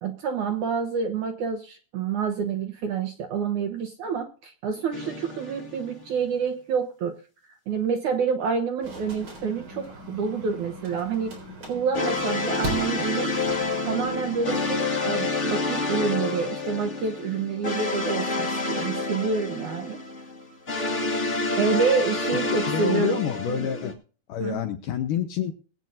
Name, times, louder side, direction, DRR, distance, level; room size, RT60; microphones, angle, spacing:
voice 1, 0.0-7.2 7.7-11.4 11.7-13.4 13.8-20.0 21.6-23.2 23.5-23.7 24.4-24.6, right 6 dB, 70° right, 5 dB, 2.0 m, -28 dB
sound 1, 4.9-6.1 11.9-23.9, left 3 dB, 35° left, 1.2 m, -28 dB
sound 2, 8.8-14.8, right 1 dB, 30° right, 4.3 m, -39 dB
voice 2, 22.7-24.0 24.3-25.5, left 8 dB, 75° left, 7 dB, 2.1 m, -27 dB
21.5 x 9.1 x 2.6 m, 0.38 s
omnidirectional pair, 4.7 m